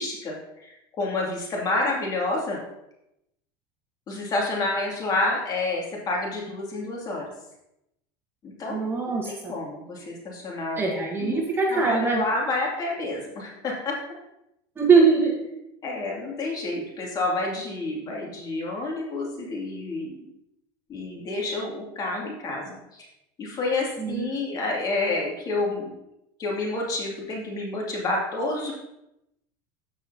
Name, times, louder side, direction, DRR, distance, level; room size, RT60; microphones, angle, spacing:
voice 1, 0.0-2.6 4.1-7.2 8.6-10.8 11.2-11.4 11.7-14.0 15.8-20.2 20.9-23.1 23.4-25.9 26.4-28.7, left 2 dB, 35° left, -2 dB, 2.5 m, -29 dB
voice 2, 8.7-9.5 10.8-12.2 14.8-15.5 24.0-24.4, right 4 dB, 20° right, 0 dB, 1.2 m, -22 dB
14.0 x 4.8 x 2.8 m, 0.84 s
supercardioid pair, 135°, 12 cm